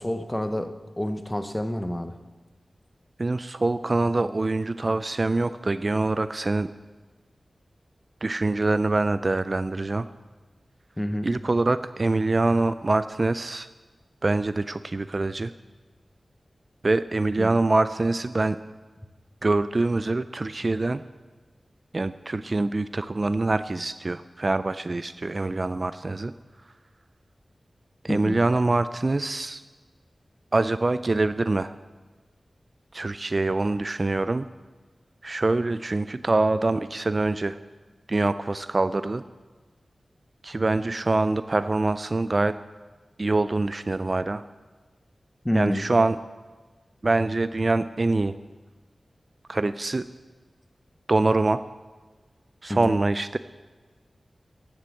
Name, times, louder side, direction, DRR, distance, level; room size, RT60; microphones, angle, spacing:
voice 1, 0.0-2.2 11.0-11.3 17.4-17.6 28.1-28.4 45.4-45.9 52.7-53.0, left 1 dB, 15° left, 9 dB, 0.9 m, -28 dB
voice 2, 3.2-6.7 8.2-10.1 11.2-13.7 14.2-15.5 16.8-18.6 19.4-21.0 21.9-26.3 28.0-29.6 30.5-31.7 32.9-34.5 35.2-37.6 38.1-39.2 40.4-42.6 43.2-44.4 45.5-46.2 47.0-48.4 49.5-50.1 51.1-51.6 52.6-53.4, right 2 dB, 40° right, 13 dB, 0.3 m, -24 dB
15.5 x 7.5 x 6.3 m, 1.3 s
wide cardioid pair, 95°, 0 cm